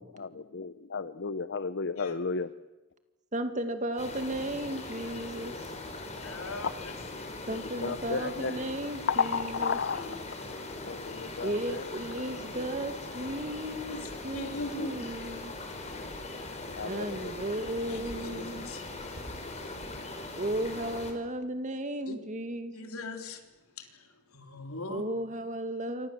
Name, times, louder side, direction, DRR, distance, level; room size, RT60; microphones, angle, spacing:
voice 1, 0.0-2.5 6.6-6.7 7.4-8.7 9.1-11.9 16.8-17.3, left 5 dB, 55° left, 0.8 m, -33 dB
voice 2, 3.3-5.6 7.5-9.8 11.4-15.5 16.8-18.7 20.4-22.9 24.9-26.1, right 1 dB, 35° right, 2.2 m, -35 dB
sound 1, 4.0-21.1, left 2 dB, 30° left, 4.6 m, -40 dB
voice 3, 6.2-6.7 13.9-14.0 14.3-15.0 17.9-18.8 22.1-22.2 22.7-23.4 23.8-23.9 24.3-25.0, left 2 dB, 75° left, 3.7 m, -39 dB
28.0 x 25.5 x 7.6 m
head